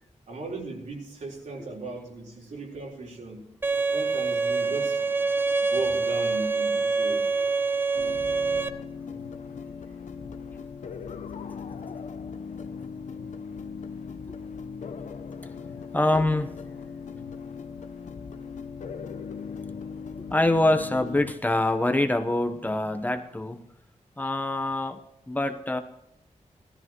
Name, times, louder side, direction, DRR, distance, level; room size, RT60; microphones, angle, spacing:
voice 1, 0.3-3.4 3.9-5.3 5.6-7.3 10.2-10.3, right 3 dB, 85° right, -2 dB, 4.0 m, -37 dB
Bowed string instrument, 3.6-8.7, right 4 dB, 15° right, 0.7 m, -25 dB
sound 1, 8.0-21.3, left 5 dB, 90° left, 0.9 m, -39 dB
voice 2, 15.9-16.5 20.3-23.6 24.2-25.0 25.3-25.8, left 1 dB, 15° left, 6 dB, 0.9 m, -25 dB
17.0 x 13.5 x 3.0 m, 0.80 s
wide cardioid pair, 130°, 12 cm